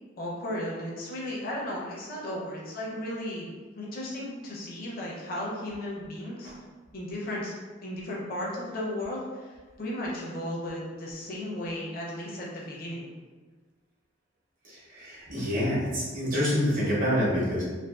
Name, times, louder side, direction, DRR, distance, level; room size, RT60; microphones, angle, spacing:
voice 1, 0.2-6.5 6.9-7.5 7.8-13.1, left 1 dB, 50° left, -4 dB, 0.6 m, -35 dB
voice 2, 14.9-17.6, equal, 45° right, -7 dB, 0.9 m, -26 dB
2.5 x 2.3 x 2.3 m, 1.4 s
head